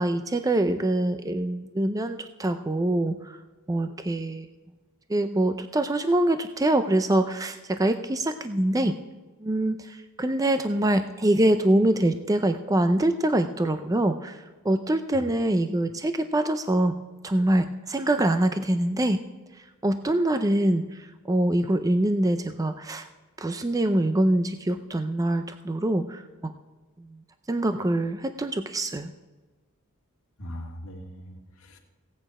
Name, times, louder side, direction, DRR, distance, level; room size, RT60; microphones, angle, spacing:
voice 1, 0.0-3.4 3.7-4.5 5.1-9.0 9.4-16.9 17.2-19.2 19.6-23.1 23.4-26.5 27.0-27.2 27.5-29.1, right 1 dB, 15° right, 9 dB, 0.4 m, -24 dB
voice 2, 30.4-31.8, equal, 70° left, 1 dB, 1.9 m, -40 dB
16.0 x 9.0 x 4.8 m, 1.3 s
head